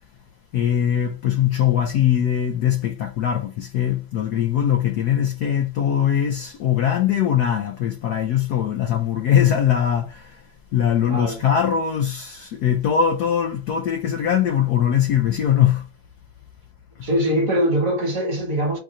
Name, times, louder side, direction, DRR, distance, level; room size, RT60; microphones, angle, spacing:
voice 1, 0.5-15.9 17.0-17.1, left 9 dB, 80° left, 0.9 m, -21 dB
voice 2, 11.1-11.4 17.0-18.8, equal, 45° right, 1.3 m, -22 dB
4.6 x 2.5 x 4.1 m
omnidirectional pair, 2.3 m